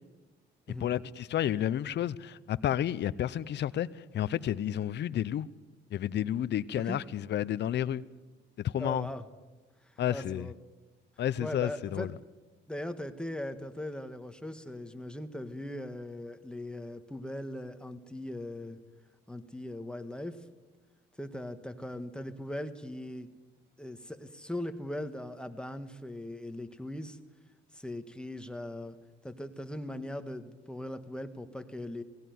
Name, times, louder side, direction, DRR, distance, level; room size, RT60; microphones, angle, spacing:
voice 1, 0.8-3.9 4.1-5.5 5.9-8.0 8.6-9.1 10.0-10.5 11.2-12.1, left 11 dB, 60° left, 0.7 m, -31 dB
voice 2, 8.8-9.3 9.8-10.5 11.4-12.1 12.7-18.8 19.3-20.4 21.2-23.3 23.8-27.2 27.7-29.0 29.2-32.0, left 1 dB, 5° left, 1.5 m, -39 dB
18.0 x 16.5 x 9.4 m
cardioid pair, 90°, 20 cm